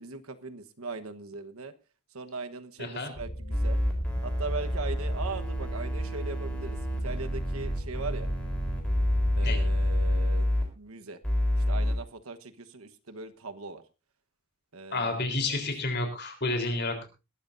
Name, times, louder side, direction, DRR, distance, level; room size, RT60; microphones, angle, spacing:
voice 1, 0.0-1.7 2.1-3.8 4.2-6.8 7.0-8.3 9.4-10.5 10.8-11.2 11.7-12.4 12.7-13.8 14.7-15.3, right 3 dB, 80° right, 9 dB, 1.2 m, -39 dB
voice 2, 2.8-3.1 9.4-9.6 14.9-17.1, left 2 dB, 50° left, 5 dB, 3.8 m, -30 dB
sound 1, 3.1-10.2, equal, 80° left, 4.2 m, -37 dB
sound 2, 3.5-10.6 11.2-12.0, left 1 dB, 5° left, 3.8 m, -28 dB
21.0 x 13.0 x 2.6 m, 0.29 s
head